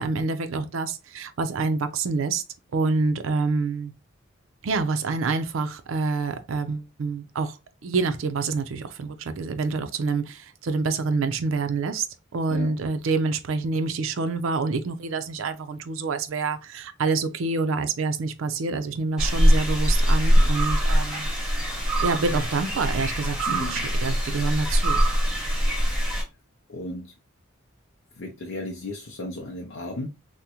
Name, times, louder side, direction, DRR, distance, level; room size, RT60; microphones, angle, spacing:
voice 1, 0.0-2.4 2.7-3.9 4.6-7.5 7.8-12.0 12.3-21.3 22.0-25.0, right 4 dB, 70° right, 0.4 m, -27 dB
sound 1, 19.2-26.2, equal, 5° right, 0.8 m, -22 dB
voice 2, 23.5-23.9 26.7-27.1 28.2-30.1, left 2 dB, 75° left, 0.5 m, -34 dB
3.5 x 2.1 x 2.8 m
head